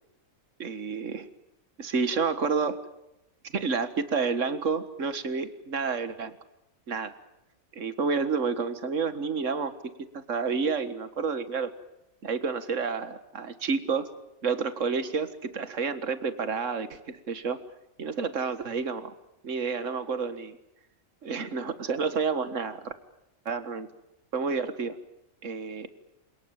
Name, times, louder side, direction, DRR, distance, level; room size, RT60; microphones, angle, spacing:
voice 1, 0.6-1.3 1.8-2.8 3.5-6.3 6.9-7.1 7.7-11.7 12.2-14.1 14.4-17.6 18.0-19.1 19.4-20.6 21.2-22.9 23.5-23.9 24.3-25.0 25.4-25.9, right 5 dB, 65° right, 12 dB, 2.0 m, -30 dB
28.0 x 19.0 x 9.0 m, 0.87 s
omnidirectional pair, 1.4 m